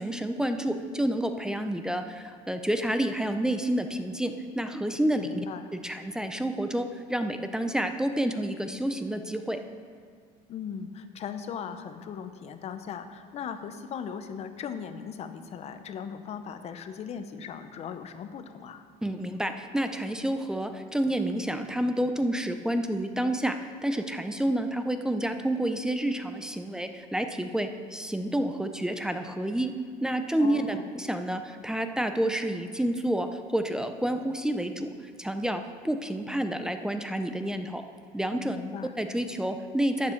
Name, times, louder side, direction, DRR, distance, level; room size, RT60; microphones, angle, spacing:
voice 1, 0.0-5.4 5.7-9.6 19.0-29.7 30.0-34.9 35.2-37.8 38.1-38.6 39.0-40.1, right 1 dB, 5° right, 7 dB, 0.5 m, -29 dB
voice 2, 5.1-5.7 10.5-18.8 30.4-30.9 38.4-38.9, left 7 dB, 40° left, 9 dB, 0.8 m, -38 dB
12.0 x 8.6 x 4.5 m, 2.1 s
cardioid pair, 130°, 16 cm